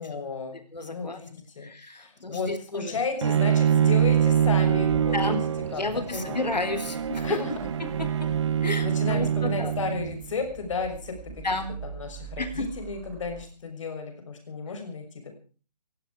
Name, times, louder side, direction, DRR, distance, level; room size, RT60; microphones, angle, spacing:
voice 1, 0.0-0.6 0.9-1.7 2.0-6.3 7.2-7.5 8.8-11.4 11.8-15.4, left 4 dB, 50° left, 6 dB, 6.1 m, -33 dB
voice 2, 0.7-1.2 1.6-3.0 5.1-5.4 5.7-7.4 7.8-8.3 8.6-9.7 11.4-11.7 12.4-12.7, left 2 dB, 80° left, 10 dB, 3.8 m, -31 dB
Bowed string instrument, 3.2-10.3, right 9 dB, 45° right, 0.7 m, -24 dB
Car / Idling / Accelerating revving vroom, 4.0-13.4, right 8 dB, 20° right, 2.1 m, -43 dB
18.5 x 15.5 x 4.8 m, 0.38 s
figure-of-eight pair, 150°, 21 cm